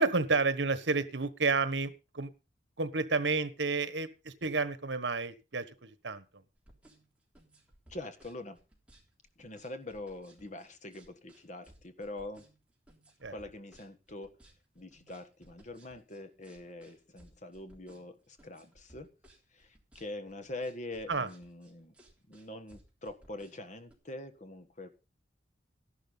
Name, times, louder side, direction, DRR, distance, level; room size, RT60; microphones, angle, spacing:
voice 1, 0.0-2.3 2.8-6.2 13.2-13.3 21.1-21.3, right 4 dB, 75° right, 12 dB, 1.3 m, -30 dB
sound 1, 6.5-23.9, right 1 dB, 5° right, 3.5 m, -61 dB
voice 2, 7.9-8.6 9.4-12.4 13.3-14.3 14.7-19.1 19.5-21.9 22.3-24.9, left 2 dB, 40° left, 9 dB, 1.5 m, -44 dB
13.0 x 11.5 x 4.1 m, 0.30 s
head